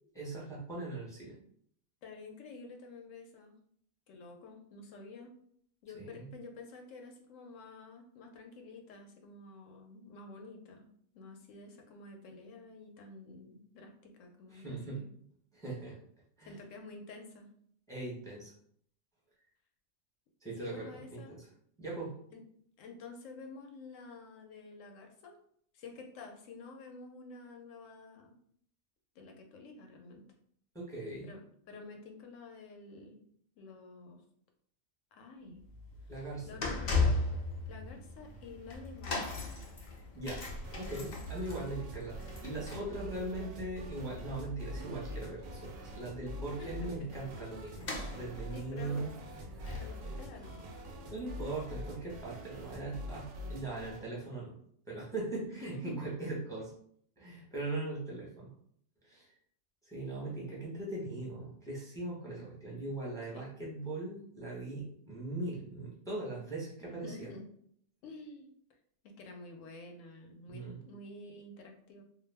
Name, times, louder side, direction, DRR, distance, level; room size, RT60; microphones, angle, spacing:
voice 1, 0.1-1.3 5.9-6.3 14.5-15.0 15.5-16.0 16.4-16.5 17.9-18.5 20.4-21.4 21.8-22.1 30.7-31.3 36.1-36.5 39.9-40.4 40.7-49.1 51.1-54.5 54.9-56.7 57.2-58.5 59.0-59.3 59.8-67.3 70.5-70.8, right 2 dB, 5° left, -6 dB, 0.6 m, -40 dB
voice 2, 2.0-3.6 4.1-5.3 5.8-15.1 16.5-17.5 20.5-21.4 22.3-22.4 22.8-25.4 25.7-28.4 29.1-30.2 31.2-33.2 33.6-34.2 35.1-35.6 36.0-36.9 37.7-39.5 46.6-47.1 48.5-49.1 49.7-50.7 55.4-56.0 63.3-63.4 67.0-67.5 68.0-68.5 69.0-72.0, left 3 dB, 80° left, 3 dB, 0.9 m, -50 dB
sound 1, 35.5-51.9 52.1-52.4 53.2-53.3, left 3 dB, 50° left, 0.5 m, -39 dB
sound 2, 40.6-54.1, equal, 90° right, 1.0 m, -45 dB
sound 3, 44.7-52.9, right 2 dB, 65° right, 0.7 m, -54 dB
2.4 x 2.1 x 3.2 m, 0.65 s
omnidirectional pair, 1.3 m